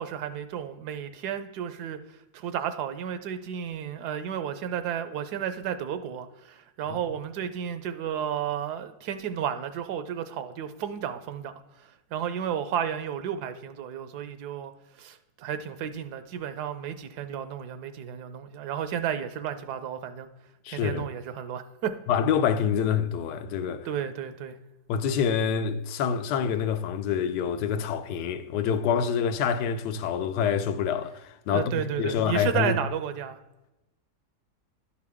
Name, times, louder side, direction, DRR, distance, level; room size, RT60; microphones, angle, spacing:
voice 1, 0.0-2.0 2.3-14.7 15.0-20.3 20.7-21.9 23.8-24.6 31.5-33.4, right 9 dB, 80° right, 1.2 m, -32 dB
voice 2, 20.6-21.1 22.1-23.9 24.9-32.8, left 7 dB, 90° left, 1.2 m, -26 dB
11.5 x 4.8 x 3.5 m
omnidirectional pair, 1.7 m